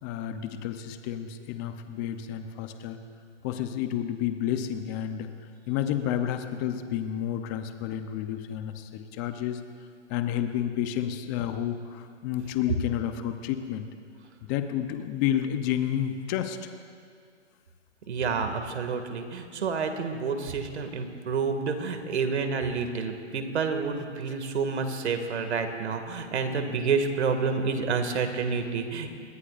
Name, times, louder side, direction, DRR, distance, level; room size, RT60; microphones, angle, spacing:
voice 1, 0.0-3.0 3.4-5.3 5.7-9.6 10.1-13.9 14.4-16.6, left 10 dB, 15° left, 8 dB, 0.6 m, -30 dB
voice 2, 18.1-29.1, right 5 dB, 65° right, 6 dB, 2.2 m, -29 dB
26.5 x 21.0 x 2.5 m, 2.2 s
hypercardioid pair, 150°, 36 cm